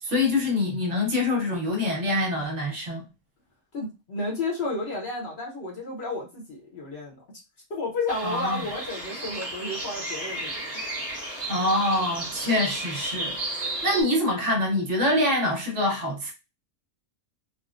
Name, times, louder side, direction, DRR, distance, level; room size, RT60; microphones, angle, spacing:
voice 1, 0.0-3.0 8.2-8.6 11.5-16.3, left 1 dB, 55° right, 1.3 m, -25 dB
voice 2, 3.7-7.2 7.7-10.8, left 2 dB, 50° left, 1.0 m, -32 dB
sound 1, 8.1-14.0, right 1 dB, 25° right, 1.4 m, -33 dB
3.5 x 2.1 x 2.4 m
omnidirectional pair, 1.5 m